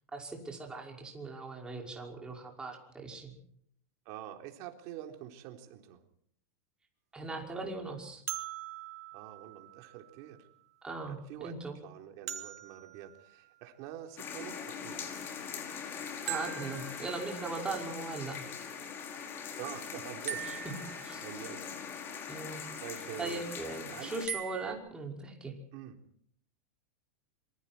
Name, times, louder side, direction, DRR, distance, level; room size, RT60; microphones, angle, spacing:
voice 1, 0.1-3.3 7.1-8.2 10.8-11.2 11.4-11.8 16.3-18.4 20.4-20.6 21.0-21.2 22.3-22.6 23.2-25.5, right 3 dB, 10° right, 1 dB, 5.6 m, -39 dB
voice 2, 4.1-6.0 9.1-10.5 11.1-15.1 19.6-20.5 21.2-21.7 22.8-23.5 23.9-24.1 25.7-26.0, right 11 dB, 45° right, 5 dB, 3.9 m, -46 dB
sound 1, 8.3-10.2 12.3-14.1 16.3-17.7 20.3-21.6 24.3-24.7, right 10 dB, 85° right, 3.8 m, -42 dB
sound 2, 14.2-24.3, left 6 dB, 25° left, 5.3 m, -42 dB
27.0 x 24.5 x 4.5 m, 0.65 s
supercardioid pair, 150°, 8 cm